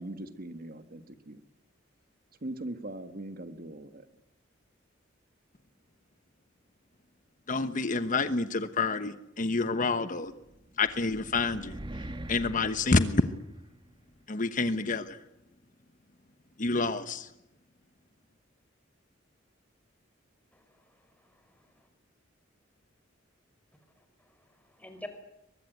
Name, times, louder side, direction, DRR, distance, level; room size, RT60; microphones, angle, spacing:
voice 1, 0.0-1.4 2.4-4.1, right 1 dB, 50° right, 10 dB, 1.7 m, -40 dB
voice 2, 7.5-10.3 10.8-13.3 14.3-15.2 16.6-17.3, left 3 dB, 40° left, 11 dB, 1.1 m, -28 dB
sound 1, 10.5-13.9, right 1 dB, 25° right, 1.4 m, -43 dB
voice 3, 20.5-21.7 24.0-25.1, left 1 dB, 10° left, 6 dB, 5.0 m, -49 dB
23.5 x 21.5 x 9.3 m, 0.84 s
head